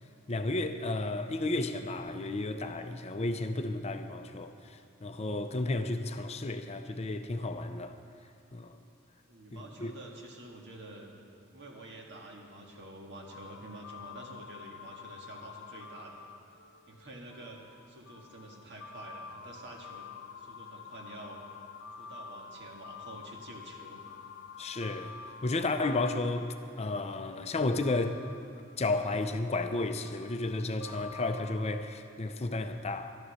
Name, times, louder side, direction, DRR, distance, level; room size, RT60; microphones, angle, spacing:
voice 1, 0.3-7.9 8.5-8.7 9.5-9.9 24.6-25.1 25.4-28.2 28.8-33.2, left 2 dB, 30° left, 0.6 m, -32 dB
voice 2, 9.3-11.1 11.5-16.3 16.9-21.4 22.0-24.0, right 1 dB, 60° right, 1.9 m, -48 dB
sound 1, 13.3-27.1 27.8-31.6, left 6 dB, 60° left, 1.0 m, -48 dB
12.5 x 11.5 x 6.4 m
head